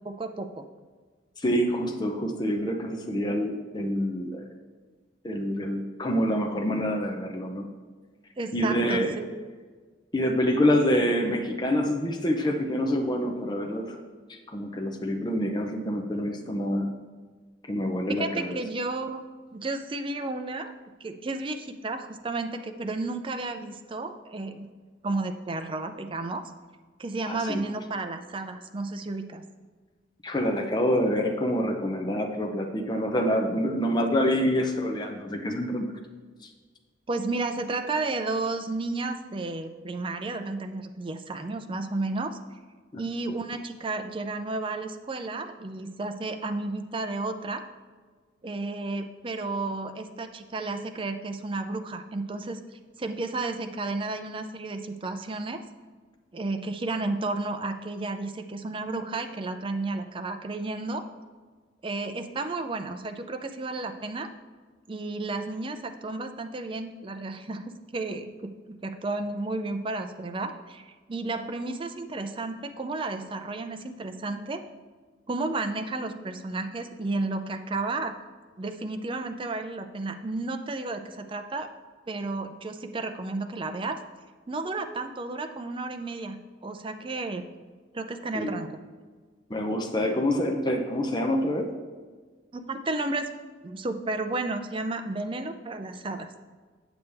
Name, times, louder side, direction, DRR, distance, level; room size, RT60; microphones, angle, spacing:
voice 1, 0.0-0.6 8.4-9.3 18.1-19.2 19.5-20.7 21.0-24.7 25.0-26.5 27.0-29.4 37.1-42.4 43.0-47.6 48.4-52.6 53.0-55.6 56.3-61.1 61.8-64.3 64.9-74.7 75.3-78.2 78.6-81.7 82.1-84.0 84.5-87.5 87.9-88.8 92.5-93.3 93.6-96.3, right 2 dB, 30° right, 7 dB, 0.5 m, -32 dB
voice 2, 1.4-4.5 5.2-7.7 8.5-9.1 10.1-14.0 14.3-16.9 17.7-18.6 27.3-27.6 30.2-36.0 36.4-36.5 42.9-43.0 88.3-88.6 89.5-91.7, equal, 25° left, 3 dB, 0.6 m, -26 dB
8.0 x 7.0 x 3.4 m, 1.5 s
head